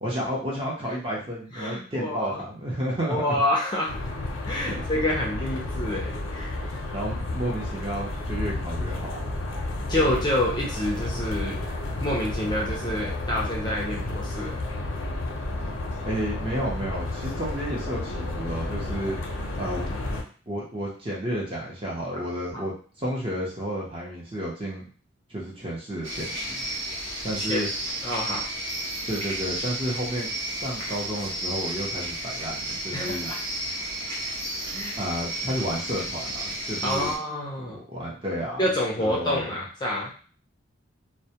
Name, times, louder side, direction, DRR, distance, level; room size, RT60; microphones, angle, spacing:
voice 1, 0.0-3.4 4.7-4.8 6.8-9.3 10.0-10.1 16.1-19.9 20.5-22.7 23.0-24.9 25.3-26.7 27.2-27.7 29.1-33.3 35.0-37.1 37.6-38.6 39.0-39.6, equal, 25° right, -4 dB, 0.6 m, -31 dB
voice 2, 1.5-2.4 3.1-3.9 4.4-6.6 9.9-11.6 12.0-14.6 27.4-27.6 28.0-28.5 32.9-33.4 34.7-35.0 36.8-37.8 38.6-40.1, left 1 dB, 20° left, -3 dB, 0.4 m, -28 dB
sound 1, 3.9-20.2, left 2 dB, 90° left, 0.5 m, -31 dB
sound 2, 26.0-37.2, right 1 dB, 80° right, 0.9 m, -32 dB
2.1 x 2.1 x 2.8 m, 0.41 s
head